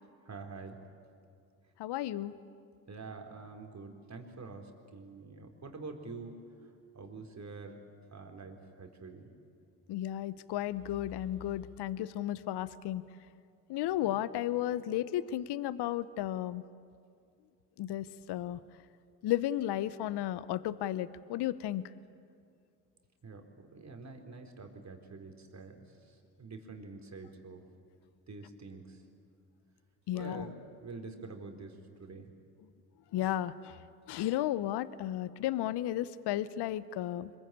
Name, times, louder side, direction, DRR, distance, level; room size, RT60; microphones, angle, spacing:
voice 1, 0.2-0.8 2.9-6.7 6.9-7.8 8.1-9.3 23.2-27.6 28.3-29.0 30.1-30.5 30.8-32.3, right 4 dB, 35° right, 4 dB, 4.1 m, -46 dB
voice 2, 1.8-2.3 9.9-13.0 13.7-16.6 17.8-18.6 19.2-21.8 30.1-30.5 33.1-33.8 34.1-37.4, left 13 dB, 55° left, 17 dB, 0.9 m, -33 dB
25.5 x 22.5 x 8.9 m, 2.3 s
hypercardioid pair, 55°, 49 cm